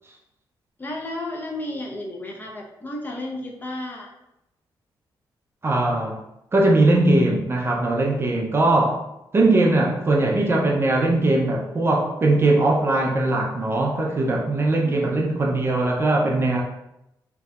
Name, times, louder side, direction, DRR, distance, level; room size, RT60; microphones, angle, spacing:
voice 1, 0.8-4.1 14.8-15.1, left 1 dB, 25° left, -1 dB, 0.5 m, -33 dB
voice 2, 5.6-6.2 6.5-9.0 9.3-16.6, right 2 dB, 30° right, -1 dB, 0.4 m, -20 dB
3.3 x 2.6 x 2.2 m, 0.87 s
cardioid pair, 120°, 8 cm